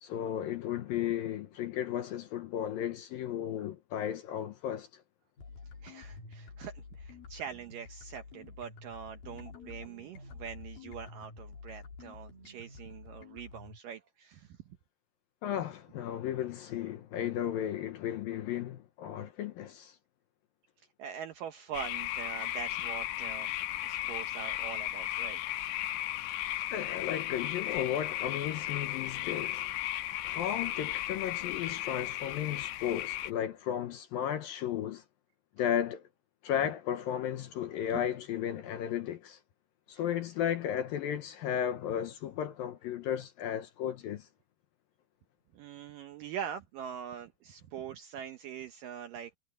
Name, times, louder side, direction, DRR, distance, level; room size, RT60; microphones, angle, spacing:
voice 1, 0.0-5.0 15.4-20.0 26.7-29.7 30.2-35.0 35.6-36.0 36.4-39.4 39.9-44.3, left 10 dB, 70° left, 2.3 m, -34 dB
sound 1, 5.4-13.8, left 4 dB, 55° left, 6.4 m, -49 dB
voice 2, 5.8-14.6 21.0-23.5 23.8-25.4 45.5-49.4, right 8 dB, 75° right, 2.1 m, -43 dB
sound 2, 21.7-33.3, left 14 dB, 90° left, 3.1 m, -35 dB
omnidirectional pair, 5.0 m